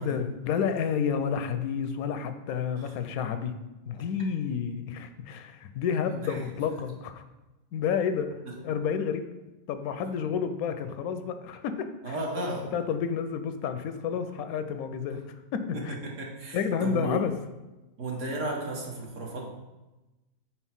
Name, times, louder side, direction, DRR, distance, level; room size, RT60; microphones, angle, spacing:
voice 1, 0.0-3.5 3.9-7.2 7.7-8.3 8.6-9.3 9.7-15.2 15.5-16.0 16.5-17.3, left 7 dB, 80° left, 9 dB, 1.0 m, -30 dB
voice 2, 6.1-6.5 8.4-8.5 12.0-12.7 15.7-17.2 18.0-19.5, right 2 dB, 60° right, -1 dB, 1.4 m, -34 dB
4.5 x 4.3 x 5.7 m, 1.1 s
omnidirectional pair, 1.5 m